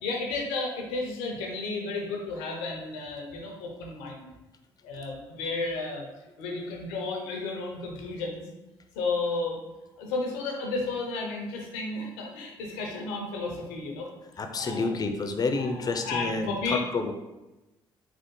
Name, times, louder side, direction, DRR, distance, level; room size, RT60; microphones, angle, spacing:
voice 1, 0.0-4.3 4.8-6.0 6.4-8.4 8.9-9.6 10.0-14.1 14.6-15.0 15.5-16.8, left 3 dB, 90° left, 0 dB, 0.6 m, -33 dB
voice 2, 14.4-16.5 16.9-17.1, left 3 dB, 35° left, 5 dB, 0.4 m, -29 dB
3.4 x 2.0 x 3.1 m, 1.0 s
hypercardioid pair, 60°, 12 cm